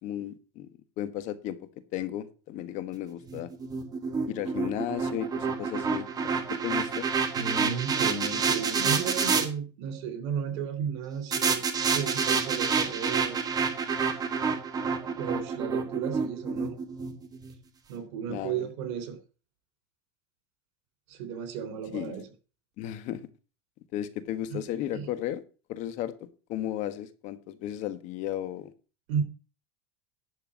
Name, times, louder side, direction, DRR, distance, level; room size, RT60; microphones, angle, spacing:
voice 1, 0.0-0.7 1.0-1.6 1.9-3.5 4.3-6.3 6.6-7.1 18.3-18.7 21.9-22.2 22.8-23.2 23.9-25.4 25.7-28.7, left 12 dB, 55° left, 12 dB, 1.4 m, -34 dB
trance trumpet fade in out, 3.3-9.5 11.3-17.5, right 5 dB, 25° right, 1.8 m, -28 dB
voice 2, 7.4-11.6 11.9-13.4 15.0-16.8 17.9-19.2 21.1-22.2 24.5-24.6 24.9-25.1 29.1-29.2, right 7 dB, 75° right, 8 dB, 3.5 m, -33 dB
11.0 x 4.6 x 7.2 m, 0.35 s
supercardioid pair, 125°, 15 cm